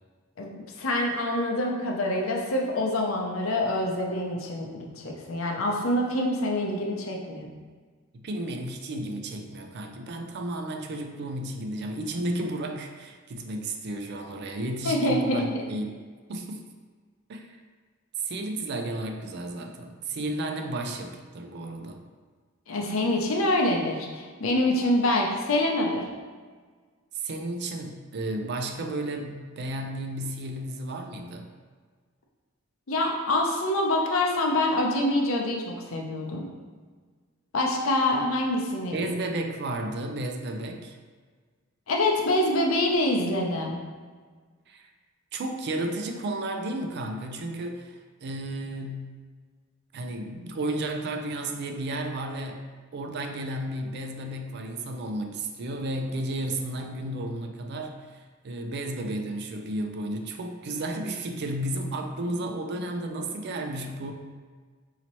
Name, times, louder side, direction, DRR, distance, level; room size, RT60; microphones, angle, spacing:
voice 1, 0.8-7.5 14.8-15.6 22.7-26.0 32.9-36.5 37.5-39.1 41.9-43.8, left 1 dB, 90° left, 0 dB, 0.6 m, -26 dB
voice 2, 8.1-16.0 16.3-16.7 17.3-17.6 18.2-22.0 27.1-31.5 38.9-40.9 44.7-44.9 45.3-49.1 49.9-64.1, right 1 dB, 55° right, 4 dB, 0.4 m, -33 dB
4.1 x 2.8 x 3.0 m, 1.5 s
head